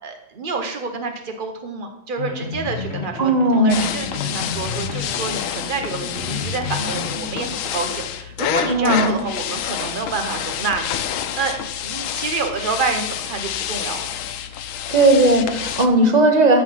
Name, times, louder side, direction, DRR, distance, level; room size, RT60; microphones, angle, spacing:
voice 1, 0.0-11.0 11.4-11.5 11.8-14.1 15.9-16.1, right 4 dB, 70° right, 5 dB, 0.5 m, -28 dB
sound 1, 2.2-7.7, left 4 dB, 40° left, 1.1 m, -31 dB
voice 2, 3.2-3.9 8.7-9.3 14.9-16.6, right 1 dB, 25° right, 4 dB, 1.1 m, -16 dB
sound 2, 3.7-15.9, left 9 dB, 85° left, 1.5 m, -28 dB
14.0 x 5.0 x 5.7 m, 0.87 s
omnidirectional pair, 2.2 m